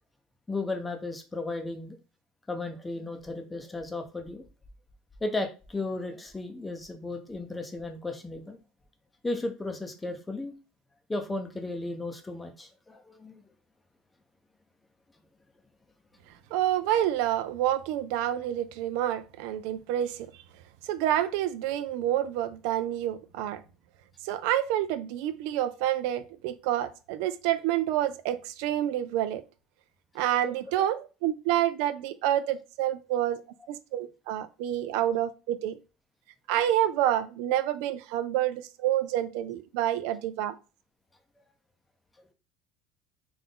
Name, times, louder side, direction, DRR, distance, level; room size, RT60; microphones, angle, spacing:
voice 1, 0.5-2.0 2.5-4.5 5.2-8.6 9.2-10.5 11.1-13.4, left 2 dB, 10° left, 0.6 m, -34 dB
voice 2, 16.5-20.3 20.8-23.6 24.2-29.4 30.1-33.4 33.7-35.8 36.5-40.5, right 12 dB, 75° right, 0.4 m, -28 dB
3.7 x 2.5 x 3.8 m
cardioid pair, 145°, 0 cm